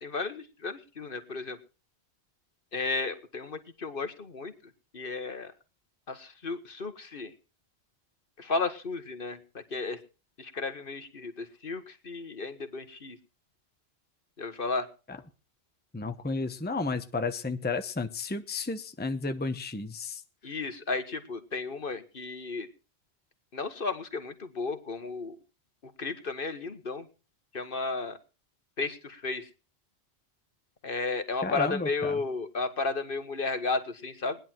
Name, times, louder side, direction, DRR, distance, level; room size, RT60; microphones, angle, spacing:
voice 1, 0.0-1.6 2.7-4.5 4.9-5.5 6.1-7.3 8.4-10.0 10.4-13.2 14.4-14.9 20.4-22.7 23.5-25.3 26.0-27.0 27.5-28.2 28.8-29.5 30.8-34.4, left 3 dB, 55° left, 9 dB, 1.6 m, -33 dB
voice 2, 15.9-20.2 31.4-32.2, left 3 dB, 10° left, 8 dB, 0.9 m, -32 dB
19.5 x 10.5 x 4.5 m, 0.34 s
omnidirectional pair, 1.1 m